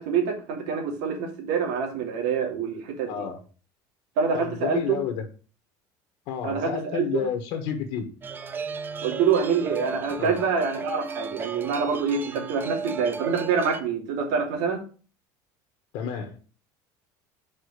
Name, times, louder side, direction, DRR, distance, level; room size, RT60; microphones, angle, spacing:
voice 1, 0.0-3.3 4.2-5.0 6.4-7.2 9.0-14.8, right 6 dB, 85° right, 1 dB, 2.8 m, -26 dB
voice 2, 3.0-3.4 4.3-5.2 6.3-8.2 10.2-10.4 15.9-16.4, left 8 dB, 65° left, 5 dB, 1.4 m, -31 dB
sound 1, 8.2-13.8, right 6 dB, 20° right, 0.6 m, -35 dB
5.3 x 5.2 x 6.6 m, 0.37 s
cardioid pair, 155°, 9 cm